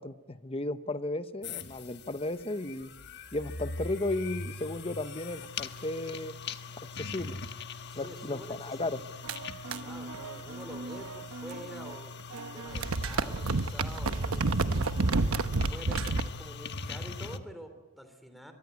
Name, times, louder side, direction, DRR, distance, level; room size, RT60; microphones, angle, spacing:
voice 1, 0.0-2.9 3.3-6.3 6.9-7.4 7.9-9.0, left 2 dB, 25° left, 11 dB, 1.0 m, -34 dB
sound 1, 1.4-17.4, left 4 dB, 55° left, 1.3 m, -42 dB
voice 2, 7.9-9.0 9.8-14.9 15.7-18.5, equal, ahead, 8 dB, 3.3 m, -47 dB
sound 2, 9.2-11.9 12.2-16.3, right 3 dB, 80° right, 1.0 m, -31 dB
24.5 x 23.0 x 9.5 m, 1.1 s
head